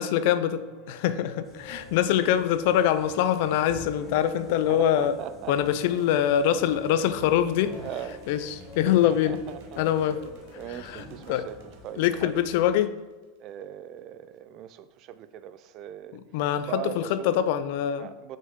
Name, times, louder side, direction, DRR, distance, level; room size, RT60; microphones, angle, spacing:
voice 1, 0.0-5.2 5.5-7.7 8.3-9.4 9.8-10.2 10.7-11.0 11.3-11.5 12.0-12.9 16.3-18.1, left 10 dB, 55° left, 0.4 m, -24 dB
sound 1, 0.5-10.8, left 2 dB, 35° left, 0.8 m, -47 dB
sound 2, 1.4-12.7, left 1 dB, ahead, 1.3 m, -48 dB
voice 2, 4.7-5.5 7.8-8.2 9.0-9.8 10.5-12.5 13.4-16.2 16.6-17.3 18.0-18.4, right 10 dB, 35° right, 0.3 m, -40 dB
sound 3, 5.8-13.6, right 5 dB, 55° right, 1.1 m, -53 dB
6.3 x 5.5 x 3.7 m
supercardioid pair, 160°, 0 cm